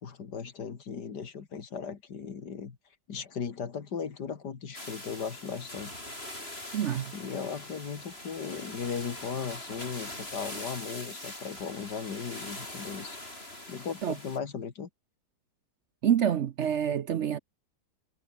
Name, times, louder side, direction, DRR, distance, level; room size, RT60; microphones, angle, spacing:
voice 1, 0.0-2.8 3.1-5.9 7.1-13.2 13.7-14.9, left 6 dB, 90° left, 2.6 m, -37 dB
sound 1, 4.7-14.4, left 1 dB, 35° left, 7.9 m, -42 dB
voice 2, 6.7-7.1 14.0-14.1 16.0-17.4, right 9 dB, 60° right, 0.8 m, -27 dB
omnidirectional pair, 1.7 m